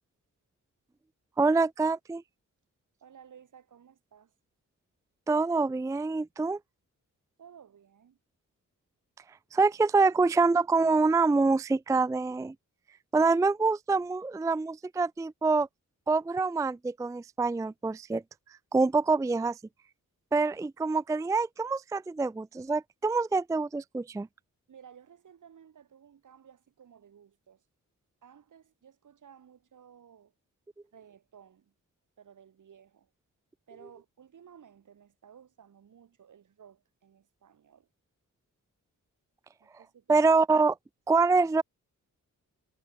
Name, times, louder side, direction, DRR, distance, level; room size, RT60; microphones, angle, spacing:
voice 1, 1.4-2.2 5.3-6.6 9.5-12.5 13.1-15.7 16.1-18.2 18.7-19.6 20.3-24.3 40.1-40.7 41.1-41.6, right 3 dB, 10° right, 0.4 m, -25 dB
voice 2, 3.0-4.3 7.4-8.2 24.7-27.6 28.2-30.3 30.9-31.7 32.2-33.1 33.7-37.9 39.6-40.3, right 8 dB, 70° right, 5.0 m, -55 dB
wide cardioid pair, 150°, 32 cm